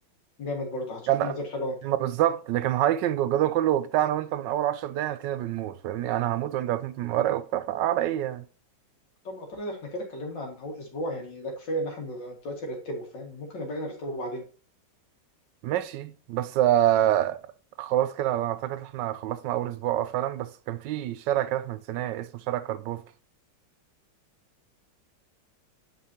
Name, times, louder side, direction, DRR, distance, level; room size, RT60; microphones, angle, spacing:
voice 1, 0.4-1.8 9.2-14.4, equal, 85° left, 2.5 m, -34 dB
voice 2, 1.8-8.4 15.6-17.4 17.8-23.0, right 12 dB, 80° right, 1.2 m, -26 dB
9.5 x 5.4 x 2.8 m
omnidirectional pair, 1.9 m